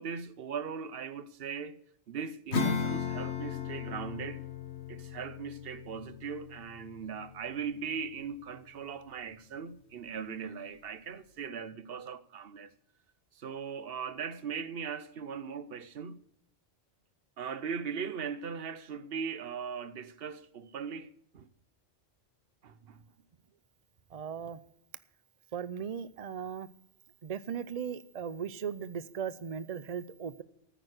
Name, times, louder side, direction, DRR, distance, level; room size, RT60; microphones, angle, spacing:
voice 1, 0.0-1.8 2.1-4.4 4.9-12.7 13.3-16.2 17.4-21.5 22.6-23.0, right 6 dB, 65° right, 0.9 m, -39 dB
Acoustic guitar / Strum, 2.5-8.5, left 6 dB, 75° left, 1.6 m, -36 dB
voice 2, 24.1-24.6 25.5-26.7 27.2-30.4, right 7 dB, 45° right, 0.5 m, -37 dB
14.5 x 9.1 x 6.5 m
omnidirectional pair, 1.1 m